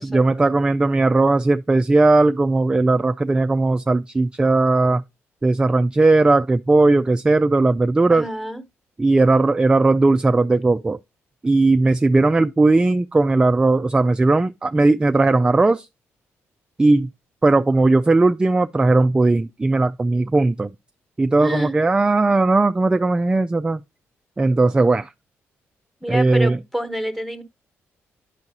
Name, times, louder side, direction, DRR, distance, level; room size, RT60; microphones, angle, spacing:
voice 1, 0.0-5.0 5.4-8.3 9.0-11.0 11.4-15.9 16.8-17.1 17.4-20.7 21.2-23.8 24.4-25.1 26.1-26.6, right 2 dB, 15° right, 0.3 m, -17 dB
voice 2, 8.1-8.6 21.4-21.8 26.0-27.4, equal, 5° left, 1.1 m, -27 dB
9.7 x 4.6 x 2.8 m
cardioid pair, 70°, 5 cm